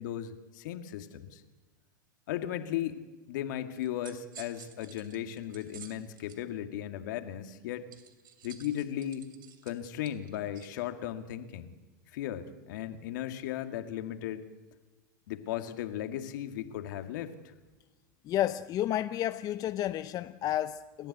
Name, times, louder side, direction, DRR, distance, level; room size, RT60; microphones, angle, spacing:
voice 1, 0.0-1.4 2.3-7.9 8.4-9.3 9.6-11.7 12.1-14.4 15.3-17.3, left 11 dB, 65° left, 2.1 m, -36 dB
sound 1, 3.8-6.4 7.9-10.8, right 10 dB, 75° right, 3.2 m, -52 dB
voice 2, 18.2-21.1, left 12 dB, 35° left, 0.7 m, -31 dB
29.0 x 13.5 x 8.2 m
hypercardioid pair, 105°, 11 cm